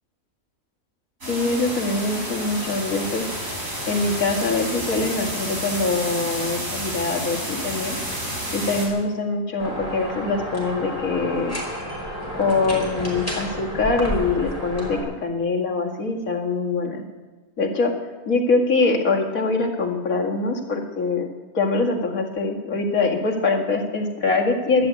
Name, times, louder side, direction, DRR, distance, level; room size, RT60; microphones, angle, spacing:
sound 1, 1.2-8.9, equal, 65° right, 5.4 m, -30 dB
voice 1, 1.3-3.3 3.9-8.0 8.5-11.6 12.3-17.0 17.6-17.9 18.3-21.2 21.5-24.9, left 3 dB, 65° left, 0 dB, 2.4 m, -23 dB
sound 2, 9.6-15.0, equal, 10° left, 5.2 m, -31 dB
13.0 x 12.5 x 8.3 m, 1.2 s
omnidirectional pair, 1.6 m